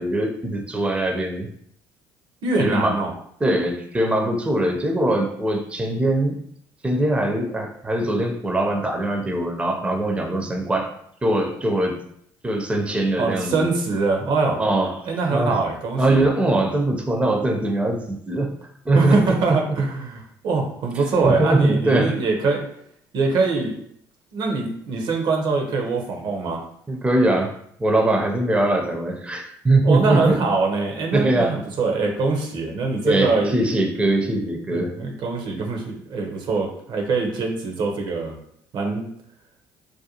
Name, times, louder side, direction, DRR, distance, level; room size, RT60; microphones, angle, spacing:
voice 1, 0.0-1.5 2.6-3.0 3.4-6.4 6.8-10.9 11.2-12.0 12.4-13.7 14.6-15.6 16.0-18.5 18.9-19.3 21.0-22.2 26.9-30.4 31.1-31.6 33.0-34.9, right 1 dB, 15° right, 2 dB, 0.5 m, -22 dB
voice 2, 2.4-3.1 13.2-14.6 15.0-16.3 18.9-22.6 23.1-23.7 24.3-26.6 29.8-33.5 34.7-38.4 38.7-39.1, right 3 dB, 60° right, 2 dB, 0.6 m, -23 dB
2.4 x 2.2 x 2.8 m, 0.68 s
hypercardioid pair, 65°, 9 cm